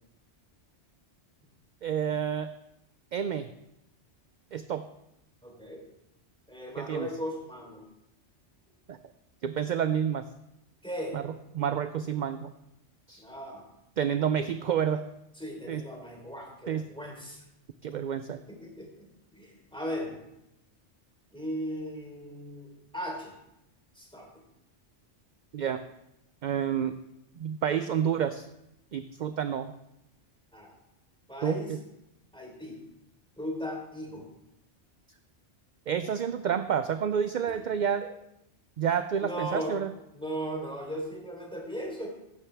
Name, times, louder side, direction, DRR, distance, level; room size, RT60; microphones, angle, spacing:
voice 1, 1.8-2.5 3.1-3.5 4.5-4.8 6.8-7.1 8.9-9.0 9.4-10.3 11.1-11.2 11.5-12.5 13.1-13.2 14.0-15.0 15.7-15.8 16.7-16.8 17.8-18.4 25.5-25.8 26.4-27.0 27.4-28.5 28.9-29.7 31.4-31.8 35.9-38.0 38.8-39.9, right 8 dB, 55° right, 10 dB, 0.5 m, -29 dB
voice 2, 5.4-5.8 6.5-7.8 10.8-11.2 13.2-13.6 14.2-14.3 15.3-17.4 18.5-19.1 19.3-20.2 21.3-23.3 23.9-24.3 30.5-30.7 31.3-31.7 32.3-32.8 33.4-34.2 37.5-37.6 39.2-39.8 40.1-42.1, equal, 5° left, -1 dB, 3.4 m, -37 dB
15.5 x 11.5 x 3.4 m, 0.84 s
omnidirectional pair, 1.2 m